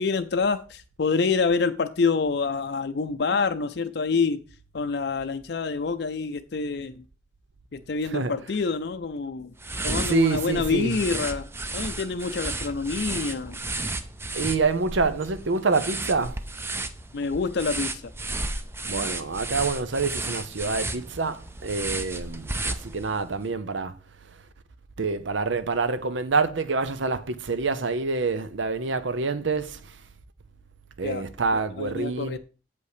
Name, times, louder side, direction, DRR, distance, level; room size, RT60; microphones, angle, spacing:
voice 1, 0.0-4.4 4.7-7.0 7.7-9.5 9.8-11.5 11.7-13.6 17.1-18.1 31.0-31.2 31.5-32.4, left 4 dB, 60° left, 0.5 m, -27 dB
sound 1, 9.6-23.3, right 2 dB, 15° right, 0.5 m, -33 dB
voice 2, 10.1-11.0 14.3-16.4 18.8-24.4 25.0-30.0 31.0-32.4, right 4 dB, 85° right, 0.7 m, -27 dB
8.0 x 5.4 x 4.9 m
head